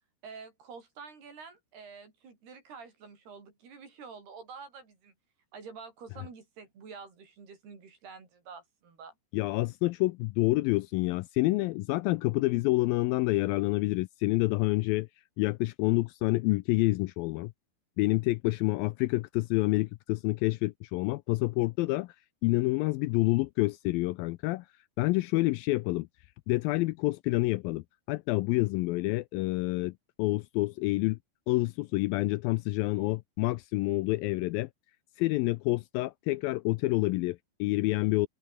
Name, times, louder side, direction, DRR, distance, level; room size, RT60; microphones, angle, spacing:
voice 1, 0.2-5.1 5.5-9.1 18.4-18.6, right 5 dB, 75° right, 7.9 m, -48 dB
voice 2, 9.3-15.1 15.4-17.5 18.0-22.1 22.4-24.7 25.0-26.1 26.5-29.9 30.2-31.2 31.5-34.7 35.2-38.3, left 20 dB, 85° left, 2.1 m, -28 dB
omnidirectional pair, 4.6 m